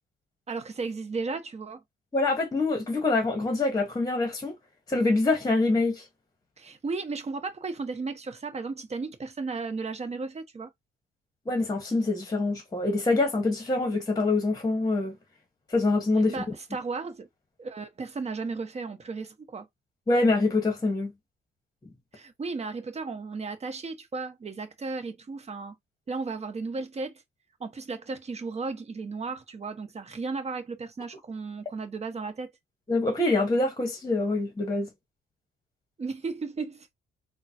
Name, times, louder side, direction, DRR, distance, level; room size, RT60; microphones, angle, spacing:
voice 1, 0.5-1.8 6.6-10.7 16.3-17.3 17.6-19.7 22.1-25.7 26.1-27.2 27.6-32.5 36.0-36.9, right 4 dB, 30° right, 1.0 m, -35 dB
voice 2, 2.1-4.6 4.9-6.0 11.5-15.2 15.7-16.4 20.1-21.1 32.9-34.9, left 2 dB, 20° left, 1.2 m, -25 dB
3.7 x 2.2 x 2.8 m
cardioid pair, 100°, 21 cm